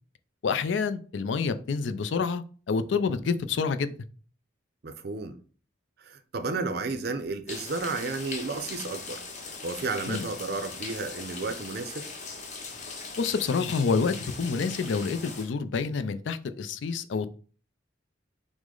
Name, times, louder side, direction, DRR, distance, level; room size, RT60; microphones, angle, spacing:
voice 1, 0.4-3.9 10.1-10.3 13.2-17.3, left 5 dB, 70° left, 0.4 m, -28 dB
voice 2, 4.8-5.4 6.0-9.2 9.6-12.0, right 3 dB, 55° right, 0.5 m, -32 dB
sound 1, 7.5-15.5, left 4 dB, 40° left, 0.8 m, -40 dB
6.1 x 2.1 x 3.8 m
head